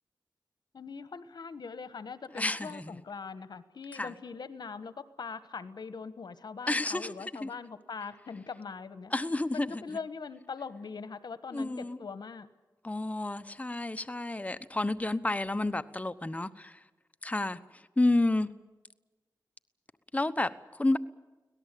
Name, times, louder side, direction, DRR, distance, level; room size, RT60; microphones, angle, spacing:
voice 1, 0.7-9.1 9.5-12.5, left 5 dB, 85° left, 1.3 m, -42 dB
voice 2, 2.4-3.0 3.9-4.1 6.7-7.1 7.4-7.5 9.1-9.7 11.5-12.0 12.8-16.8 17.2-17.6 18.0-18.5 20.1-20.5 20.8-21.0, left 2 dB, 20° left, 1.0 m, -30 dB
25.0 x 18.0 x 8.4 m
cardioid pair, 50°, 7 cm